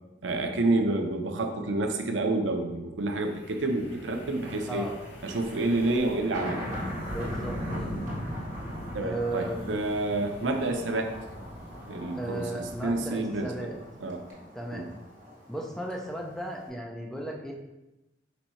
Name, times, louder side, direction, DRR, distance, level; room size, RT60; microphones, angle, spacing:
voice 1, 0.2-4.9 5.2-6.6 8.9-11.1 11.9-13.7 14.0-14.2 14.7-14.9, right 2 dB, 85° right, 5 dB, 0.5 m, -29 dB
Wind, 3.3-13.5, equal, 80° left, 1.3 m, -39 dB
Thunder, 4.4-16.7, equal, 45° right, 1.5 m, -44 dB
voice 2, 7.1-7.9 9.0-9.6 12.1-13.8 14.5-14.9 15.5-17.5, right 1 dB, ahead, -1 dB, 0.5 m, -35 dB
4.1 x 2.7 x 4.3 m, 0.98 s
head